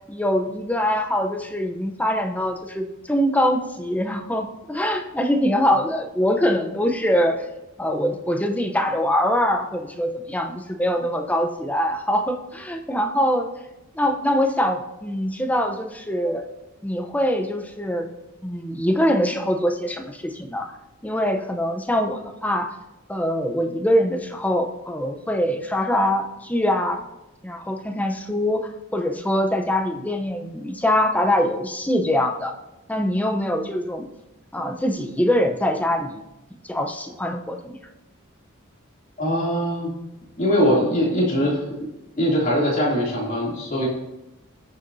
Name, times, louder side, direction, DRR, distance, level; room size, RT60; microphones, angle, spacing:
voice 1, 0.1-7.4 7.8-13.5 13.9-16.4 16.8-18.1 18.4-20.7 21.0-22.7 23.1-27.0 27.4-32.5 32.9-34.1 34.5-36.2 36.6-37.8, equal, 5° left, 4 dB, 0.7 m, -23 dB
voice 2, 39.2-39.9 40.4-41.6 42.2-43.9, equal, 40° left, -4 dB, 2.9 m, -21 dB
18.5 x 6.8 x 2.7 m, 0.97 s
head